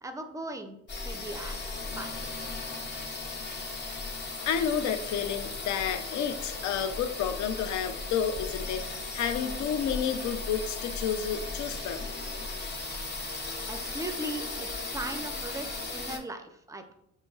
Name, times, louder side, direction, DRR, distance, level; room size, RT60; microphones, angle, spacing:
voice 1, 0.0-0.8 1.0-2.1 13.7-16.9, right 1 dB, 10° right, 6 dB, 0.4 m, -38 dB
sound 1, 0.9-16.2, left 3 dB, 35° left, 0.7 m, -37 dB
voice 2, 4.5-8.8 9.1-12.1, left 8 dB, 70° left, 9 dB, 0.5 m, -30 dB
5.1 x 3.0 x 2.3 m, 0.77 s
cardioid pair, 90°, 30 cm